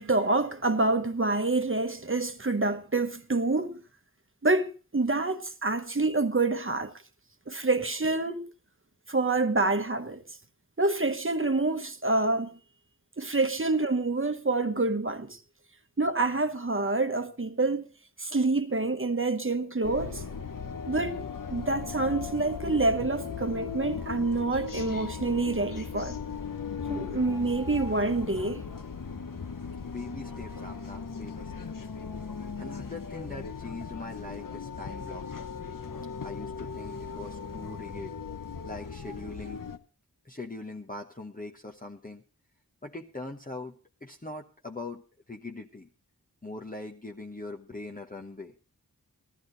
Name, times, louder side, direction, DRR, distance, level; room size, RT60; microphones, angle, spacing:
voice 1, 0.0-3.8 4.4-6.9 7.5-8.5 9.1-10.2 10.8-12.5 13.2-15.4 16.0-17.8 18.2-20.2 20.9-21.2 21.5-26.2 26.9-28.6, right 3 dB, 35° right, 1.1 m, -27 dB
sound 1, 19.8-39.8, left 6 dB, 60° left, 1.0 m, -38 dB
voice 2, 29.8-31.7 32.6-35.5 36.2-38.1 38.6-39.6 40.2-42.2 42.8-43.7 44.0-45.0 45.3-45.9 46.4-48.5, left 2 dB, 25° left, 1.1 m, -41 dB
14.0 x 13.5 x 4.0 m
wide cardioid pair, 60°, 37 cm